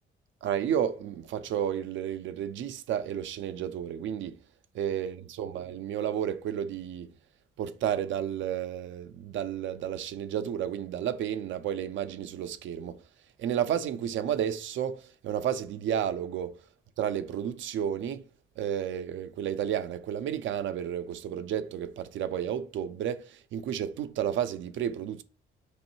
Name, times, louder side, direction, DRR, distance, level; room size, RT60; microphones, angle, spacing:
voice 1, 0.4-4.4 4.7-7.1 7.6-13.0 13.4-16.6 17.0-18.2 18.6-25.2, right 9 dB, 75° right, 0.5 m, -32 dB
5.1 x 3.1 x 3.0 m
cardioid pair, 90°, 20 cm